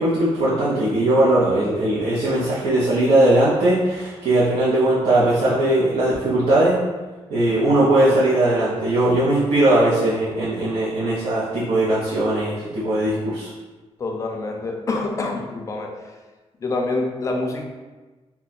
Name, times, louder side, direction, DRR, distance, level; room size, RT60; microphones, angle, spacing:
voice 1, 0.0-6.8 7.3-13.5, right 1 dB, 70° right, -9 dB, 0.8 m, -19 dB
voice 2, 14.0-16.0 16.6-17.6, left 2 dB, 30° left, 2 dB, 0.4 m, -26 dB
2.8 x 2.3 x 4.1 m, 1.3 s
wide cardioid pair, 155°, 11 cm